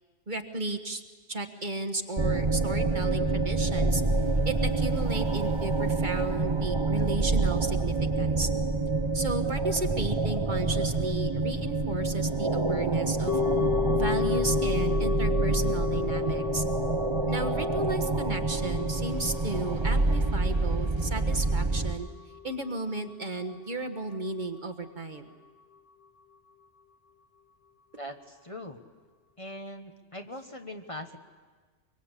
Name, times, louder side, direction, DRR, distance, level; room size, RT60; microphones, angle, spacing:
voice 1, 0.3-1.0 1.3-4.0 4.4-8.5 9.1-13.3 13.9-16.6 17.3-22.1 22.4-25.3, right 2 dB, 45° right, 6 dB, 1.5 m, -34 dB
sound 1, 2.2-21.9, right 3 dB, 25° right, 1.0 m, -27 dB
sound 2, 13.3-23.6 23.8-23.9, left 10 dB, 55° left, 1.1 m, -33 dB
voice 2, 28.0-28.8 29.4-31.2, left 1 dB, 30° left, 5 dB, 1.3 m, -41 dB
24.5 x 24.0 x 8.2 m, 1.4 s
omnidirectional pair, 1.2 m